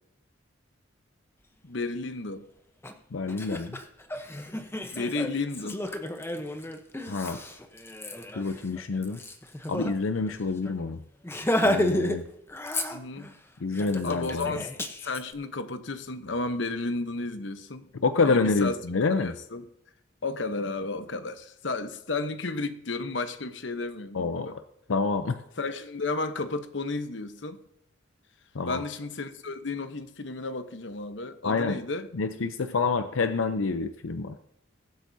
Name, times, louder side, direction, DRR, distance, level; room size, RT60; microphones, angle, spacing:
voice 1, 1.6-2.4 4.9-5.8 12.9-13.3 14.0-14.7 15.0-17.9 18.2-18.8 19.1-19.6 20.2-24.6 25.6-27.6 28.6-32.1, left 3 dB, 65° left, 10 dB, 0.9 m, -33 dB
Laughter, 2.8-2.9 3.3-9.9 10.3-10.4 10.7-10.8 11.2-12.2 12.5-13.3 13.7-15.2, left 1 dB, 10° left, 0.8 m, -31 dB
voice 2, 3.1-3.8 7.1-7.4 8.4-9.2 9.7-11.0 11.6-12.3 13.6-14.6 18.0-19.3 24.1-24.6 24.9-25.4 28.5-28.8 31.4-31.8 32.1-34.4, left 4 dB, 85° left, 9 dB, 0.6 m, -27 dB
21.0 x 8.3 x 2.7 m, 0.81 s
head